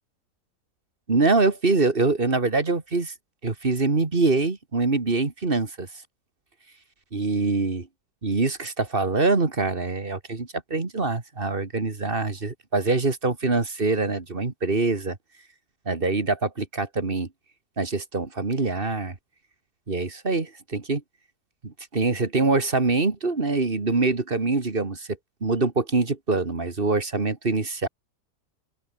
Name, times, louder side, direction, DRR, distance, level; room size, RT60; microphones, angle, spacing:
voice 1, 1.1-3.1 3.4-5.9 7.1-7.9 8.2-15.2 15.9-17.3 17.8-19.2 19.9-21.0 21.6-25.1 25.4-27.9, right 3 dB, 30° right, 2.3 m, -24 dB
open air
omnidirectional pair, 1.9 m